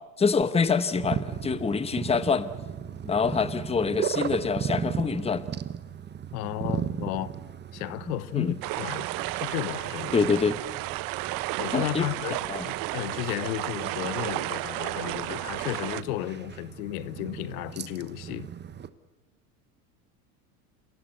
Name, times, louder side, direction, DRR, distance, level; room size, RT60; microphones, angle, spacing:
voice 1, 0.0-2.5 3.0-5.4 8.3-8.6 10.1-10.6 11.7-12.1 12.5-12.6, left 5 dB, 15° left, 1.1 m, -26 dB
sound 1, 0.9-18.9, right 8 dB, 25° right, 1.1 m, -37 dB
voice 2, 6.3-7.3 7.7-10.2 11.6-18.5, left 16 dB, 70° left, 1.1 m, -33 dB
sound 2, 8.6-16.0, right 19 dB, 50° right, 0.8 m, -32 dB
29.0 x 16.5 x 8.1 m
supercardioid pair, 105°, 44 cm